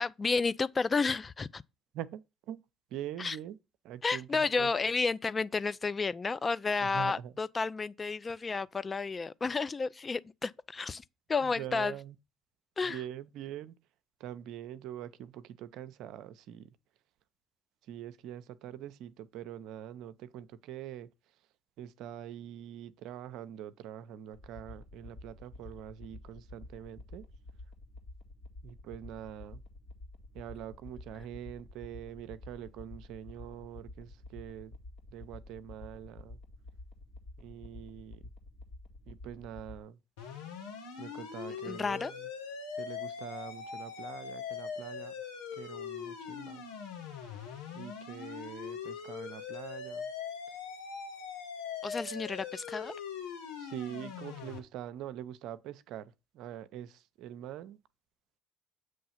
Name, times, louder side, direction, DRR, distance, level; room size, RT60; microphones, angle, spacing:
voice 1, 0.0-1.6 3.2-3.4 4.0-11.9 12.8-13.0 41.6-42.1 51.8-53.0, left 4 dB, 35° left, 0.4 m, -31 dB
voice 2, 1.9-2.6 2.9-3.6 3.8-4.7 6.8-7.3 11.4-12.1 12.8-13.8 14.2-16.7 17.8-21.4 21.8-27.2 28.6-29.6 30.3-34.8 35.1-36.4 37.4-38.3 39.1-40.0 41.0-42.3 42.8-45.1 45.5-46.6 47.7-50.1 50.5-50.6 53.6-57.8, right 10 dB, 75° right, 0.5 m, -44 dB
sound 1, 24.3-39.8, left 2 dB, 60° left, 2.0 m, -50 dB
sound 2, 40.2-54.6, left 6 dB, 90° left, 1.4 m, -41 dB
7.8 x 3.2 x 5.6 m
hypercardioid pair, 60°, 0 cm